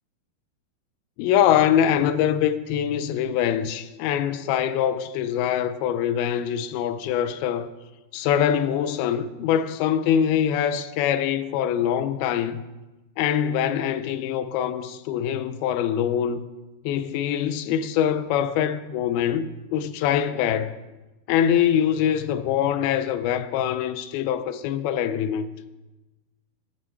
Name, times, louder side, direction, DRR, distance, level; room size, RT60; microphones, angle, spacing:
voice 1, 1.2-7.7 8.1-12.6 13.2-16.4 16.9-20.7 21.3-25.5, left 9 dB, 85° left, 2.5 m, -23 dB
12.0 x 7.5 x 4.6 m
omnidirectional pair, 4.3 m